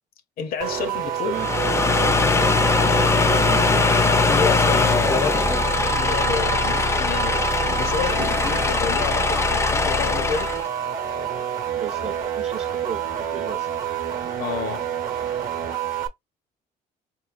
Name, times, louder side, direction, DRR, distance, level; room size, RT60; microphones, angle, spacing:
voice 1, 0.4-1.4 4.2-10.6 14.4-14.9, left 7 dB, 60° left, 0.6 m, -30 dB
sound 1, 0.6-16.1, right 8 dB, 55° right, 0.9 m, -28 dB
sound 2, 1.3-10.7, left 4 dB, 15° left, 0.4 m, -21 dB
voice 2, 2.9-3.9 4.7-5.4 11.7-13.7, right 7 dB, 40° right, 0.5 m, -34 dB
sound 3, 7.1-10.6, right 8 dB, 85° right, 0.9 m, -39 dB
4.2 x 3.0 x 2.4 m
cardioid pair, 110°, 17 cm